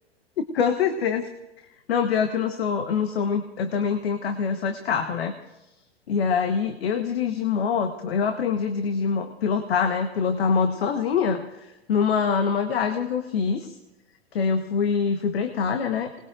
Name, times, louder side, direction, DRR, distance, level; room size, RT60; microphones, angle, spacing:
voice 1, 0.5-1.3 1.9-5.3 6.1-13.7 14.3-16.2, left 6 dB, 70° left, 6 dB, 1.3 m, -24 dB
27.0 x 20.0 x 2.6 m, 0.99 s
hypercardioid pair, 105°, 32 cm